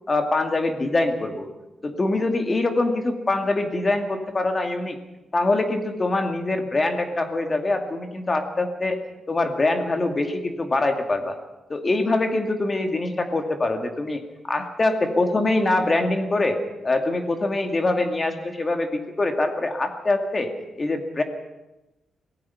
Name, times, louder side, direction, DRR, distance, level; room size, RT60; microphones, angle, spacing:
voice 1, 0.1-1.5 1.8-5.0 5.3-9.0 9.3-11.4 11.7-16.6 16.8-20.5 20.8-21.2, left 2 dB, 25° left, 5 dB, 2.3 m, -24 dB
26.0 x 17.5 x 5.8 m, 0.99 s
wide cardioid pair, 140°, 0 cm